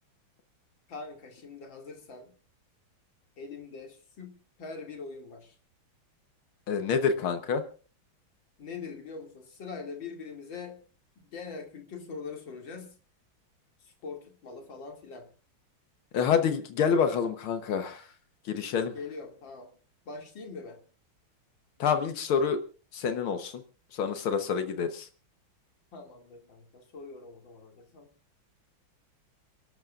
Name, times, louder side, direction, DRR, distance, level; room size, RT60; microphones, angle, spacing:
voice 1, 0.9-2.3 3.4-5.6 8.6-10.8 11.2-13.0 13.8-15.3 18.9-19.7 20.1-20.8 25.9-28.1, left 4 dB, 65° left, 4 dB, 3.1 m, -43 dB
voice 2, 6.7-7.6 16.1-18.0 18.5-18.9 21.8-22.6 22.9-23.6 23.9-25.1, left 6 dB, 80° left, 8 dB, 2.0 m, -27 dB
29.5 x 12.5 x 2.4 m, 0.36 s
omnidirectional pair, 2.3 m